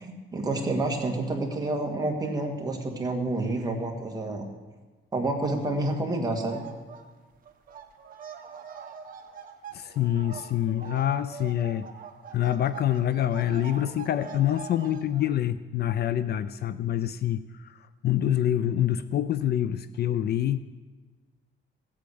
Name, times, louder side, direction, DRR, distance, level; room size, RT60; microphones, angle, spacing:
voice 1, 0.0-4.5 5.1-6.6, right 2 dB, 20° right, 1 dB, 1.8 m, -29 dB
sound 1, 6.5-7.0 7.3-15.3, right 7 dB, 45° right, 1.2 m, -43 dB
voice 2, 9.7-11.9 12.3-20.6, left 11 dB, 55° left, 13 dB, 0.5 m, -26 dB
16.0 x 8.5 x 7.8 m, 1.3 s
cardioid pair, 175°, 20 cm